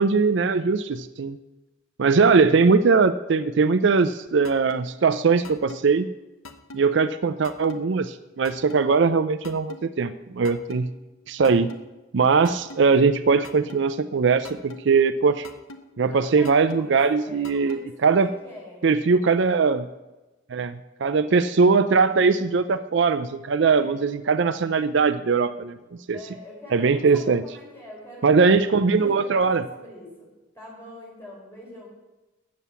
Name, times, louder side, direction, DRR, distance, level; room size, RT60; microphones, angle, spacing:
voice 1, 0.0-1.4 2.0-6.1 6.7-10.9 11.3-11.7 12.1-15.5 16.0-18.3 18.8-19.9 20.5-25.8 26.1-26.2 26.7-27.4 28.2-29.6, right 4 dB, 60° right, 12 dB, 0.4 m, -20 dB
sound 1, 4.4-4.8 5.4-5.8 6.4-6.8 7.4-7.8 8.4-8.8 9.4-9.8 10.4-10.8 11.4-11.8 12.4-12.8 13.4-13.8 14.4-14.8 15.4-15.8 16.4-16.8 17.4-17.8, left 2 dB, 85° left, 1.1 m, -40 dB
voice 2, 16.0-18.9 23.6-24.0 26.1-30.3 30.5-31.9, left 1 dB, 10° left, -4 dB, 4.6 m, -43 dB
9.6 x 7.5 x 6.9 m, 1.1 s
head